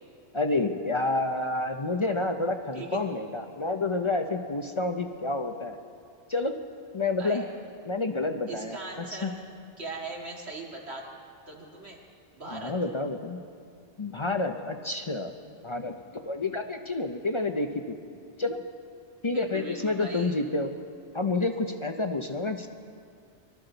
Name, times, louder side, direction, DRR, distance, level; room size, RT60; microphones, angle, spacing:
voice 1, 0.3-5.8 6.3-6.6 6.9-7.4 7.9-9.3 12.5-13.4 14.0-15.3 15.6-18.0 18.4-18.6 19.2-20.7 21.1-22.7, left 2 dB, 35° left, 6 dB, 0.5 m, -29 dB
voice 2, 8.5-9.4 9.8-11.1 11.5-12.0 12.3-12.8 19.3-20.3, right 2 dB, 70° right, -1 dB, 2.2 m, -39 dB
22.0 x 13.0 x 3.9 m, 2.3 s
omnidirectional pair, 1.2 m